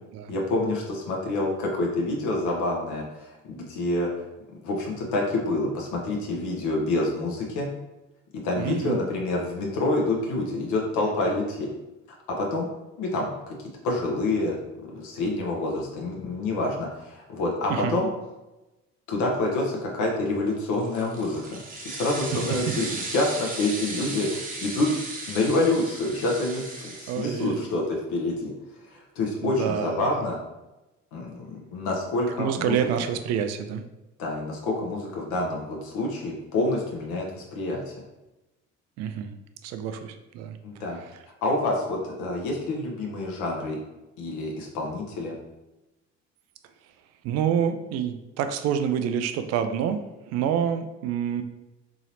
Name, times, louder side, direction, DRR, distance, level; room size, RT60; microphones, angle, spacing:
voice 1, 0.3-4.2 4.6-7.7 8.4-11.7 12.4-12.7 13.0-14.6 14.8-18.1 19.1-21.6 21.8-24.9 25.3-28.5 28.9-30.4 31.1-32.8 34.2-37.9 40.6-41.0 41.4-43.8 44.2-45.3, left 2 dB, 50° left, -1 dB, 0.8 m, -27 dB
voice 2, 8.6-9.0 17.7-18.0 22.5-22.6 27.1-27.6 29.6-30.0 32.4-33.8 39.0-39.3 39.6-40.6 41.0-41.1 47.2-51.4, right 8 dB, 45° right, 9 dB, 0.4 m, -27 dB
sound 1, 20.7-27.7, right 2 dB, 20° right, 0.8 m, -36 dB
3.7 x 2.9 x 2.8 m, 1.0 s
figure-of-eight pair, 55°, 38 cm